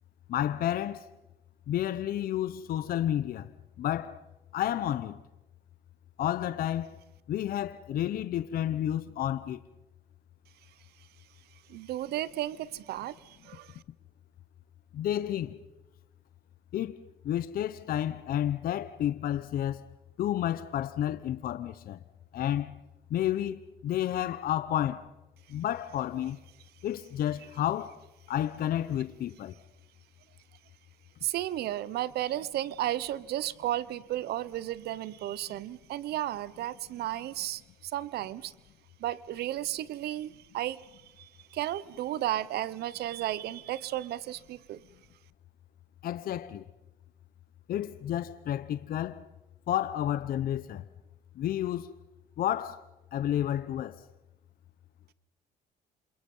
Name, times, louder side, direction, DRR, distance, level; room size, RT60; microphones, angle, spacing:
voice 1, 0.3-1.1 1.7-3.5 3.8-4.2 4.5-5.2 6.2-7.0 7.3-9.6 14.9-15.6 16.7-19.9 20.2-22.0 22.3-22.8 23.1-25.1 25.5-26.4 26.8-28.0 28.3-29.5 46.0-46.6 47.7-49.2 49.7-50.8 51.4-51.9 52.4-52.8 53.1-54.0, left 11 dB, 60° left, 0.9 m, -31 dB
voice 2, 11.7-13.8 31.2-38.5 39.0-44.8, right 13 dB, 70° right, 0.9 m, -34 dB
28.0 x 27.5 x 5.6 m
cardioid pair, 110°, 17 cm